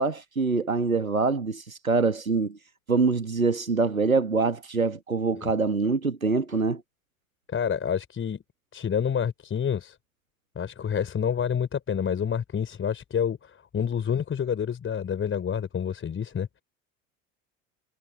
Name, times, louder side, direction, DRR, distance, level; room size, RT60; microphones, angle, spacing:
voice 1, 0.0-2.6 2.9-6.8, right 4 dB, 90° right, 1.6 m, -25 dB
voice 2, 7.5-8.4 8.7-10.0 10.6-16.6, left 7 dB, 30° left, 5.8 m, -28 dB
figure-of-eight pair, 65°, 40 cm